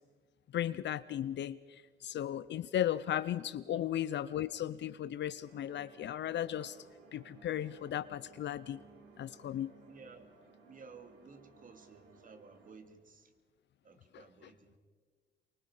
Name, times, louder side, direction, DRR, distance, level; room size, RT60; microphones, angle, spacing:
voice 1, 0.5-6.8 7.1-8.8 9.2-9.7 14.1-14.2, left 11 dB, 65° left, 15 dB, 0.6 m, -36 dB
sound 1, 5.5-12.7, right 4 dB, 80° right, 3.1 m, -60 dB
voice 2, 9.9-10.3 10.6-13.3 13.8-14.8, right 4 dB, 45° right, 7 dB, 2.3 m, -55 dB
24.5 x 24.0 x 5.0 m, 1.5 s
cardioid pair, 90°, 20 cm